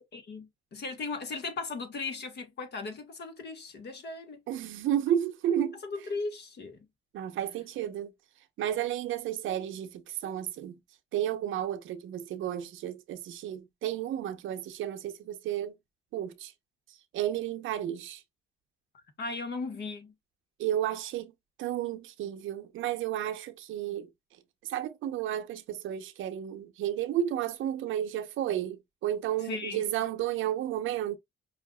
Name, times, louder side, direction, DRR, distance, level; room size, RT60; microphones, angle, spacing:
voice 1, 0.1-4.4 5.8-6.8 19.2-20.1 29.4-29.8, left 3 dB, 60° left, 1.5 m, -37 dB
voice 2, 4.5-5.8 7.1-8.1 8.6-10.8 11.1-15.7 16.1-16.5 17.1-18.2 20.6-21.3 21.6-24.1 24.6-31.2, right 11 dB, 85° right, 0.8 m, -32 dB
5.5 x 2.5 x 2.2 m
cardioid pair, 90°, 20 cm